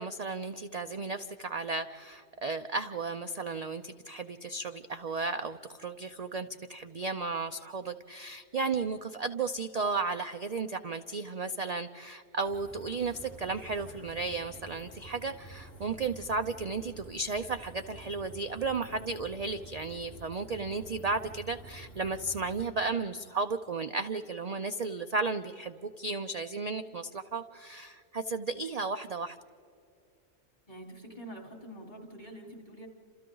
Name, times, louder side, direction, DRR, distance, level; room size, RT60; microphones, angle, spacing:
voice 1, 0.0-29.4, right 4 dB, 45° right, 8 dB, 0.5 m, -34 dB
sound 1, 12.4-22.7, right 2 dB, 80° left, 4.2 m, -49 dB
voice 2, 30.7-32.9, right 1 dB, 35° left, 1 dB, 3.7 m, -46 dB
30.0 x 27.5 x 3.9 m, 2.6 s
omnidirectional pair, 1.3 m